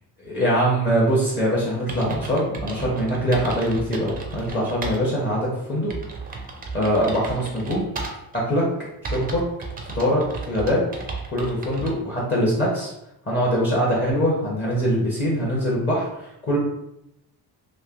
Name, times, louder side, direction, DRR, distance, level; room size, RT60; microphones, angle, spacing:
voice 1, 0.2-5.9 6.7-7.8 8.3-8.6 9.0-9.4 9.9-10.2 10.5-11.0 11.3-12.9 13.3-16.6, equal, 30° left, -5 dB, 0.8 m, -23 dB
sound 1, 1.9-5.0 5.4-5.5 5.9-8.4 9.0-12.0, right 4 dB, 25° right, 0.4 m, -34 dB
3.2 x 2.6 x 2.4 m, 0.83 s
cardioid pair, 135°, 38 cm